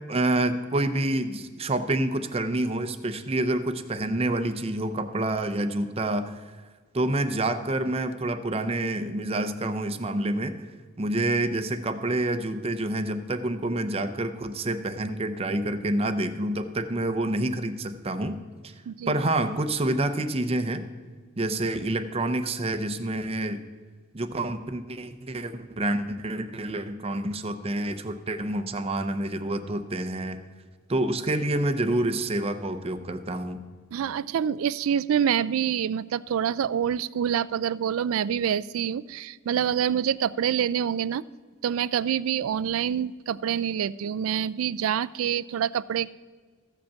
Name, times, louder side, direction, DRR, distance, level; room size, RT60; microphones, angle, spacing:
voice 1, 0.1-6.4 6.9-10.7 11.0-18.7 19.1-20.9 21.4-23.6 24.1-30.4 30.9-33.6, right 1 dB, 30° right, 9 dB, 0.6 m, -28 dB
voice 2, 18.9-19.2 33.9-41.2 41.6-46.1, right 8 dB, 80° right, 19 dB, 0.3 m, -26 dB
14.5 x 5.2 x 7.0 m, 1.5 s
head